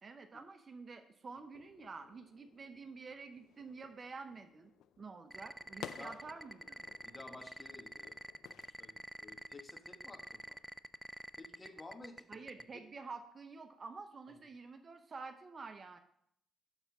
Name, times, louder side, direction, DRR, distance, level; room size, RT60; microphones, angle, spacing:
voice 1, 0.0-4.7 5.0-6.9 12.3-16.0, right 4 dB, 40° right, 8 dB, 0.7 m, -49 dB
sound 1, 1.5-8.7, left 10 dB, 80° left, 0.3 m, -55 dB
sound 2, 5.3-12.6, right 1 dB, 5° right, 0.3 m, -46 dB
voice 2, 7.0-8.2 8.5-10.6 11.4-12.8, left 2 dB, 25° left, 4 dB, 1.3 m, -53 dB
9.8 x 3.5 x 5.9 m, 0.70 s
cardioid pair, 90°, 0 cm